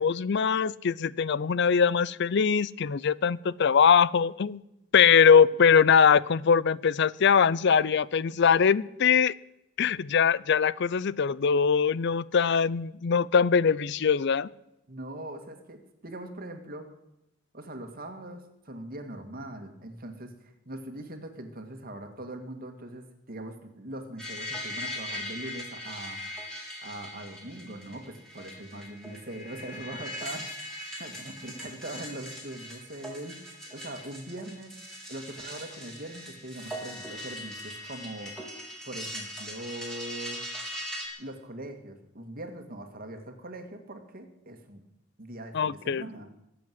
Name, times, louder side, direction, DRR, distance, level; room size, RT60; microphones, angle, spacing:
voice 1, 0.0-4.6 4.9-9.3 9.8-14.5 45.5-46.0, left 6 dB, 60° left, 21 dB, 0.5 m, -22 dB
voice 2, 14.9-16.9 17.5-26.2 26.8-30.5 31.0-34.8 35.1-38.4 38.8-40.4 41.2-44.8 45.2-46.3, right 1 dB, 45° right, 6 dB, 2.0 m, -41 dB
sound 1, 24.2-41.1, equal, 5° left, 4.0 m, -40 dB
20.0 x 7.8 x 9.4 m, 0.87 s
head